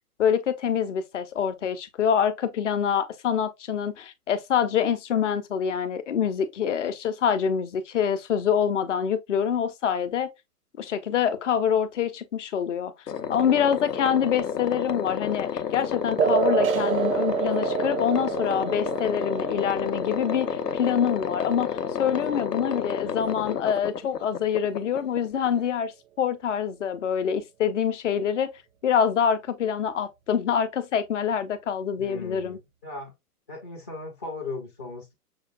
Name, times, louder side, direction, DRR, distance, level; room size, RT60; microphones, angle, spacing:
voice 1, 0.2-10.3 10.8-12.9 13.3-25.9 26.2-28.5 28.8-32.6, left 8 dB, 50° left, 0.7 m, -25 dB
sound 1, 13.1-25.7, left 7 dB, 85° left, 0.6 m, -30 dB
voice 2, 13.2-13.6 32.0-33.1 33.5-35.1, left 3 dB, 15° left, 0.4 m, -38 dB
sound 2, 16.2-23.2, right 8 dB, 60° right, 0.6 m, -29 dB
6.2 x 2.3 x 2.3 m
figure-of-eight pair, 125°, 47 cm